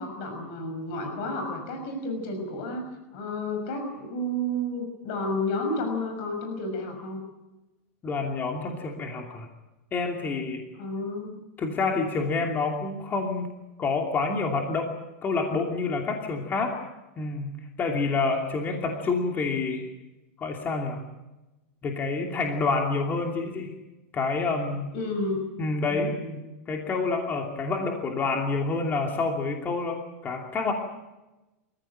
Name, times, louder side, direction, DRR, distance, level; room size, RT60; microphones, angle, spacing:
voice 1, 0.0-2.9 3.1-7.2 10.7-11.3 24.9-25.4 25.9-26.4, left 1 dB, 55° left, 5 dB, 6.1 m, -31 dB
voice 2, 8.0-9.5 9.9-10.7 11.6-14.9 15.2-16.8 17.2-17.5 17.8-19.9 20.4-21.0 21.8-23.7 24.1-24.9 25.6-26.2 26.7-30.7, left 4 dB, 25° left, 2 dB, 2.8 m, -28 dB
27.0 x 15.0 x 8.9 m, 1.0 s
supercardioid pair, 135°, 8 cm